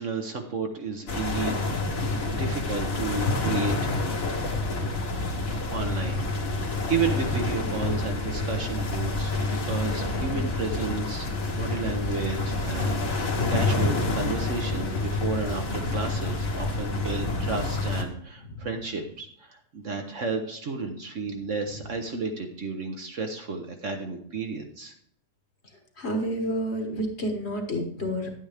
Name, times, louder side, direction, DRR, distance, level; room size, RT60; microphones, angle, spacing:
voice 1, 0.0-2.0 2.3-4.0 4.9-6.2 6.6-24.9, right 4 dB, 55° right, 4 dB, 1.2 m, -32 dB
sound 1, 1.1-18.0, left 2 dB, 55° left, 1.8 m, -28 dB
voice 2, 26.0-28.3, equal, 40° left, 3 dB, 1.6 m, -29 dB
11.0 x 9.1 x 3.4 m, 0.65 s
omnidirectional pair, 1.7 m